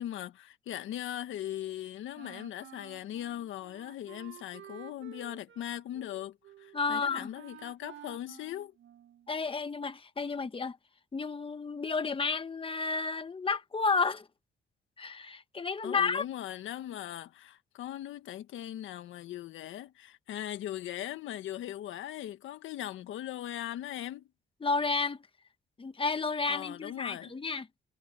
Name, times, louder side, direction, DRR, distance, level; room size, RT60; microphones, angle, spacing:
voice 1, 0.0-8.7 15.8-24.3 26.5-27.4, left 12 dB, 80° left, 1.5 m, -39 dB
Wind instrument woodwind instrument, 2.1-9.4, right 11 dB, 75° right, 1.5 m, -52 dB
voice 2, 6.7-7.3 9.3-10.8 11.1-14.2 15.0-16.3 24.6-25.2 25.8-27.9, left 4 dB, 25° left, 1.4 m, -31 dB
cardioid pair, 90°, 20 cm